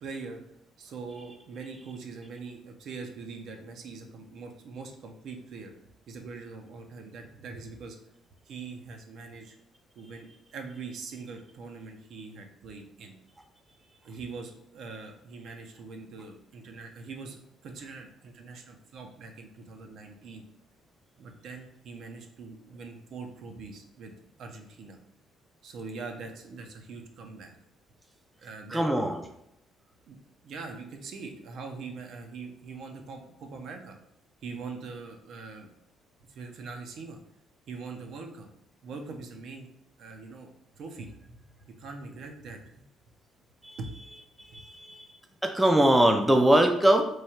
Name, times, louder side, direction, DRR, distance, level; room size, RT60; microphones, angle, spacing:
voice 1, 0.0-0.4 0.8-5.7 6.1-8.0 8.5-9.6 10.0-13.2 14.0-20.4 21.2-24.1 24.4-25.0 25.6-27.5 28.4-29.1 30.1-30.2 30.4-34.0 34.4-35.7 36.3-37.2 37.7-38.5 38.8-39.7 40.0-40.5 40.8-41.4 41.8-42.8 43.8-43.9, right 4 dB, 65° right, 4 dB, 0.6 m, -42 dB
voice 2, 28.7-29.2 43.6-43.8 44.4-45.1 45.4-47.0, right 1 dB, 10° right, 4 dB, 0.4 m, -22 dB
3.1 x 2.3 x 4.3 m, 0.79 s
cardioid pair, 110°, 0 cm